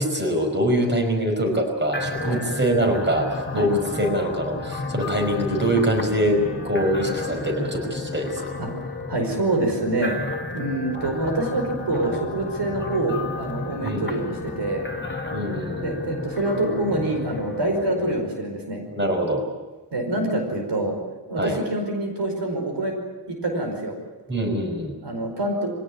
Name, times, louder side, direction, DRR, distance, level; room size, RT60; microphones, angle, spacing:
voice 1, 0.0-8.5 13.8-14.1 15.3-16.0 18.9-19.4 21.4-21.6 24.3-24.9, equal, 25° right, 3 dB, 5.4 m, -24 dB
sound 1, 1.9-18.1, left 3 dB, 25° left, 2.0 m, -32 dB
voice 2, 8.6-10.2 10.5-14.9 15.8-18.8 19.9-20.9 21.3-23.0 23.3-23.9 25.0-25.7, right 2 dB, 90° right, 3 dB, 5.1 m, -26 dB
23.0 x 17.5 x 9.6 m, 1.2 s
wide cardioid pair, 85°, 40 cm